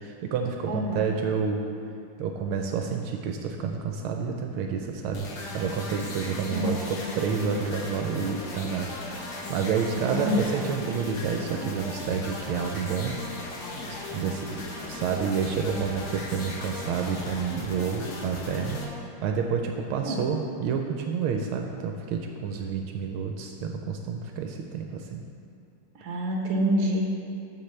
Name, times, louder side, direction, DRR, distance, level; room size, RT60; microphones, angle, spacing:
voice 1, 0.0-1.6 2.2-13.1 13.9-14.6 14.9-18.8 19.2-25.2, right 6 dB, 80° right, 3 dB, 1.4 m, -29 dB
voice 2, 0.7-1.1 6.5-7.0 10.1-10.4 20.0-20.2 25.9-27.1, equal, 45° right, -1 dB, 1.4 m, -27 dB
sound 1, 5.1-18.8, left 2 dB, 55° left, 1.5 m, -37 dB
13.5 x 5.7 x 3.2 m, 2.5 s
omnidirectional pair, 2.4 m